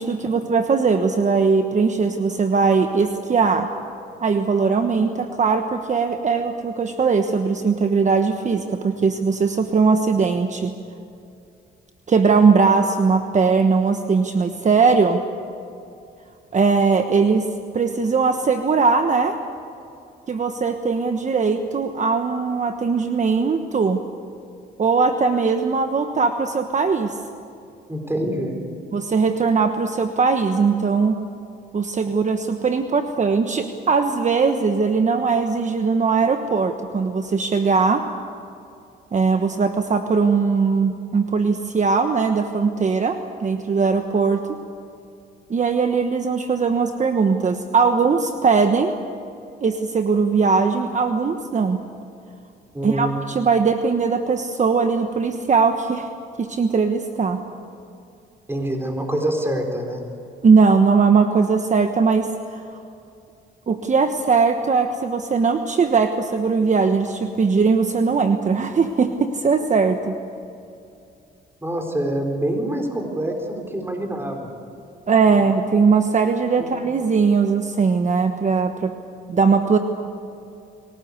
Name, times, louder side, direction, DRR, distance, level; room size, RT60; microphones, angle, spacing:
voice 1, 0.0-3.7 4.2-10.7 12.1-15.2 16.5-17.5 17.7-19.4 20.3-24.0 24.8-27.2 28.9-31.2 31.7-38.0 39.1-44.4 45.5-49.0 49.6-51.8 52.8-56.1 56.4-57.4 60.4-62.6 63.7-70.2 75.1-78.9 79.3-79.8, right 5 dB, 40° right, 7 dB, 1.2 m, -20 dB
voice 2, 27.9-28.6 52.7-53.1 58.5-60.0 71.6-74.5 75.3-75.4 76.6-76.7, right 1 dB, 10° right, 3 dB, 4.0 m, -25 dB
23.0 x 18.5 x 8.2 m, 2.5 s
cardioid pair, 90°, 20 cm